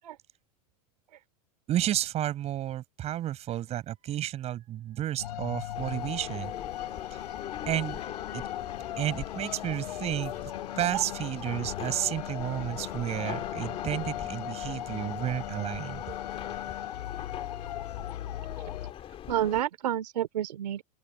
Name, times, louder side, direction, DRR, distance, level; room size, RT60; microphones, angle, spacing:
voice 1, 1.7-6.5 7.7-8.0 8.3-8.4 9.0-10.3 10.8-16.0, right 12 dB, 30° right, 6.5 m, -31 dB
sound 1, 5.2-18.9, left 12 dB, 90° left, 4.3 m, -38 dB
sound 2, 5.7-19.6, left 11 dB, 30° left, 3.6 m, -42 dB
voice 2, 19.3-20.8, right 11 dB, 85° right, 2.8 m, -29 dB
open air
supercardioid pair, 140°, 20 cm